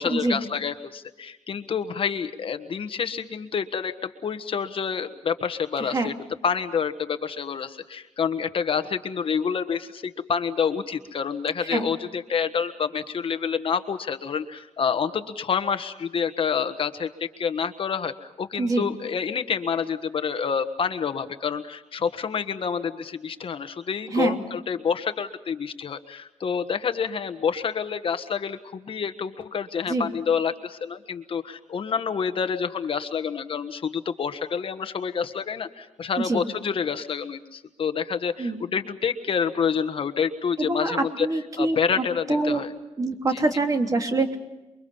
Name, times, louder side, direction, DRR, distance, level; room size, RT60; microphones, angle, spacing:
voice 1, 0.0-6.1 6.4-41.3 41.6-42.7 43.3-43.4, left 6 dB, 50° left, 9 dB, 1.4 m, -28 dB
voice 2, 5.8-6.1 11.7-11.9 18.6-18.9 24.1-24.4 29.9-30.1 36.2-36.4 38.4-38.6 40.6-41.8 42.3-42.6 43.0-44.4, right 2 dB, 30° right, 4 dB, 3.1 m, -25 dB
29.5 x 23.5 x 5.6 m, 1.0 s
wide cardioid pair, 140°, 12 cm